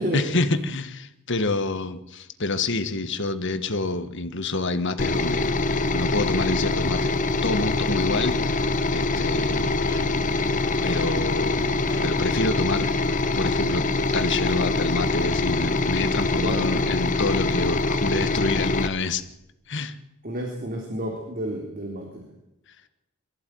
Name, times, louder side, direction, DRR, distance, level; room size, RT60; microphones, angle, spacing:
voice 1, 0.0-7.1 7.4-9.8 10.8-12.9 13.3-13.9 14.1-19.2 19.7-20.0, left 3 dB, 55° left, 10 dB, 1.6 m, -27 dB
sound 1, 5.0-18.9, left 2 dB, 35° left, 1.1 m, -24 dB
sound 2, 9.6-13.4 13.7-14.0 14.4-15.7, equal, 15° right, 5.8 m, -48 dB
voice 2, 16.4-16.7 20.2-22.1, right 1 dB, 40° right, 1 dB, 3.7 m, -30 dB
23.0 x 15.0 x 9.3 m, 0.87 s
head